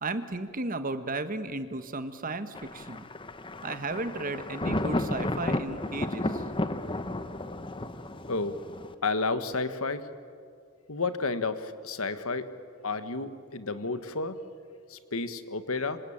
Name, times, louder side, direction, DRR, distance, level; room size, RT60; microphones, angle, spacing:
voice 1, 0.0-3.1 3.6-6.4, right 2 dB, 40° right, 10 dB, 1.4 m, -34 dB
Thunder, 2.5-8.9, left 1 dB, 25° left, 1.0 m, -33 dB
voice 2, 9.0-10.0 10.9-12.5 12.8-14.4 14.9-16.0, left 3 dB, 75° left, 11 dB, 1.5 m, -31 dB
26.0 x 26.0 x 8.8 m, 2.3 s
head